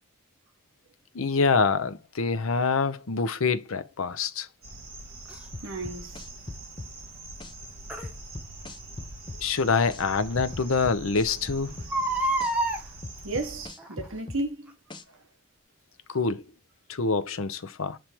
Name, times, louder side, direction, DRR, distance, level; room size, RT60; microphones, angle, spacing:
voice 1, 1.1-4.5 9.4-11.8 16.1-16.4 16.9-18.0, left 4 dB, 80° left, 0.7 m, -26 dB
sound 1, 4.6-13.7, right 2 dB, 45° right, 2.6 m, -44 dB
Crying sobbing, 5.3-5.4 7.9-8.1 9.7-9.8 10.3-10.4 10.6-10.7 11.7-12.8 13.8-14.1 14.7-14.8, right 2 dB, 5° right, 1.0 m, -28 dB
sound 2, 5.5-6.9 7.4-7.5 8.0-9.4 9.9-10.0 10.4-11.9 12.4-12.5 13.0-14.4 14.9-15.0, left 2 dB, 20° left, 0.6 m, -40 dB
voice 2, 5.6-6.3 13.2-14.8, right 2 dB, 70° right, 1.3 m, -33 dB
7.4 x 3.3 x 4.5 m
head